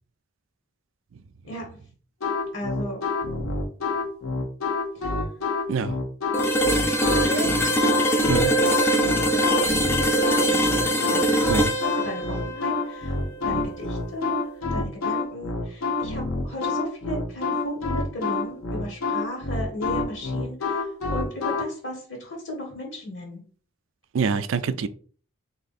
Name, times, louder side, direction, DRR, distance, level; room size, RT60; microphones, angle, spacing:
sound 1, 2.2-21.6, left 3 dB, 85° left, 0.9 m, -27 dB
voice 1, 2.5-3.0 5.0-5.1 7.1-7.7 8.2-8.5 8.9-9.9 10.5-13.2 13.4-14.4 14.7-23.4, equal, 65° left, 1.5 m, -35 dB
sound 2, 6.3-14.2, right 1 dB, 10° left, 0.4 m, -23 dB
voice 2, 24.1-24.9, right 5 dB, 70° right, 0.4 m, -25 dB
3.6 x 2.8 x 4.1 m
head